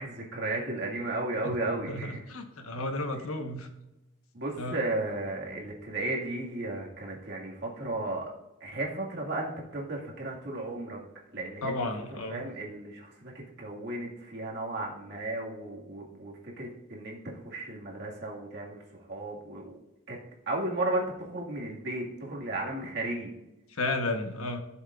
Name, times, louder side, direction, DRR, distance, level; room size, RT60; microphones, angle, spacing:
voice 1, 0.0-2.2 4.3-8.3 8.6-11.0 11.3-11.9 12.3-17.2 17.4-18.8 19.1-19.8 20.1-20.2 20.5-23.3, right 2 dB, 50° right, -2 dB, 1.9 m, -34 dB
voice 2, 1.9-3.7 4.6-4.8 11.6-12.4 23.8-24.6, left 2 dB, 85° left, 6 dB, 1.1 m, -33 dB
14.5 x 7.2 x 2.4 m, 0.96 s
head